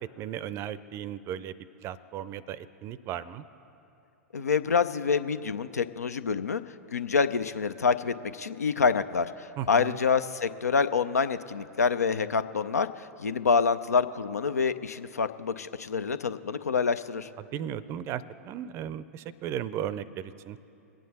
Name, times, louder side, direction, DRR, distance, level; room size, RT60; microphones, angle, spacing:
voice 1, 0.2-1.5 1.8-3.4 9.6-10.0 17.4-20.6, right 10 dB, 35° right, 17 dB, 0.5 m, -36 dB
voice 2, 4.3-6.6 6.9-17.3, left 5 dB, 80° left, 13 dB, 0.5 m, -27 dB
22.0 x 9.1 x 4.1 m, 2.7 s
figure-of-eight pair, 100°, 8 cm